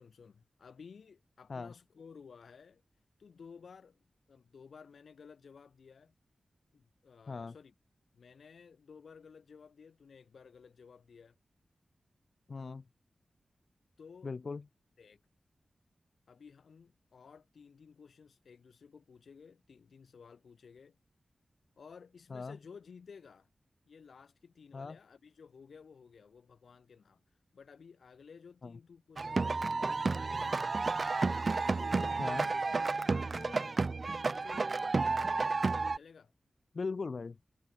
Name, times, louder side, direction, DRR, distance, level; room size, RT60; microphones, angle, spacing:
voice 1, 0.0-2.8 3.2-6.1 6.7-7.7 8.1-11.4 14.0-14.3 15.0-15.2 16.3-21.0 21.8-23.5 23.9-27.2 27.5-31.1 31.8-33.9 34.3-36.3, left 6 dB, 85° left, 5.2 m, -55 dB
voice 2, 12.5-12.8 14.2-14.6 22.3-22.6 24.7-25.0 28.6-28.8 32.2-32.5 36.7-37.4, left 4 dB, 55° left, 0.9 m, -39 dB
sound 1, 29.2-36.0, right 3 dB, 45° right, 0.4 m, -31 dB
wide cardioid pair, 95°, 0 cm